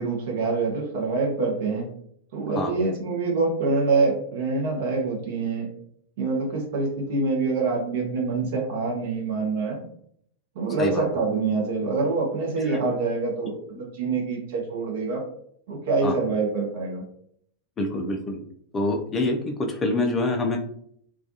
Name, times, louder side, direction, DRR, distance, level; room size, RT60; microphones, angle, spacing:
voice 1, 0.0-1.9 2.3-5.7 6.2-9.8 10.6-15.2 15.7-17.0, right 3 dB, 55° right, 1 dB, 0.6 m, -25 dB
voice 2, 17.8-18.4 18.7-20.6, left 2 dB, 20° left, 3 dB, 0.4 m, -26 dB
2.3 x 2.2 x 2.6 m, 0.67 s
figure-of-eight pair, 90°, 0 cm